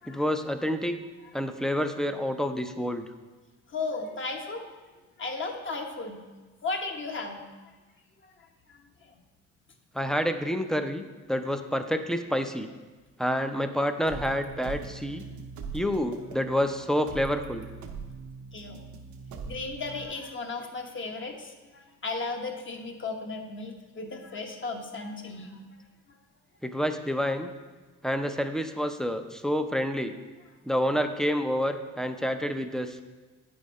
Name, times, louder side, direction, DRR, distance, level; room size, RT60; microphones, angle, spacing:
voice 1, 0.1-1.0 1.3-3.1 9.9-11.0 11.3-12.7 13.2-15.2 15.7-17.7 26.6-27.5 28.0-30.2 30.6-33.0, equal, ahead, 8 dB, 0.5 m, -28 dB
voice 2, 3.7-4.7 5.2-6.2 6.6-7.7 8.2-9.2 18.5-18.8 19.4-25.8 26.1-26.2, left 3 dB, 40° left, 3 dB, 1.1 m, -36 dB
sound 1, 14.1-20.1, right 5 dB, 75° right, 0.8 m, -41 dB
9.0 x 5.1 x 4.2 m, 1.3 s
cardioid pair, 90°, 30 cm